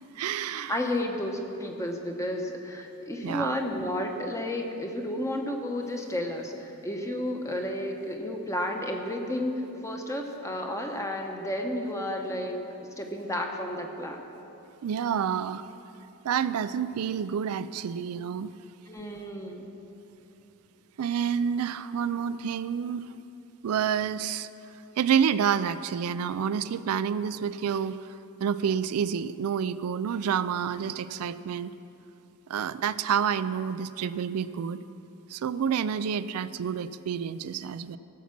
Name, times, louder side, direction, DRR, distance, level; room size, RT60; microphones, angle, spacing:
voice 1, 0.2-0.8 3.2-3.6 14.8-15.6 16.2-18.5 21.0-23.1 23.6-24.5 25.0-28.1 28.4-31.7 32.5-34.8 35.3-38.0, right 7 dB, 85° right, 14 dB, 0.4 m, -28 dB
voice 2, 0.7-12.5 13.0-14.2 18.9-19.7, left 1 dB, 15° left, 2 dB, 1.0 m, -32 dB
15.5 x 7.3 x 5.9 m, 2.9 s
head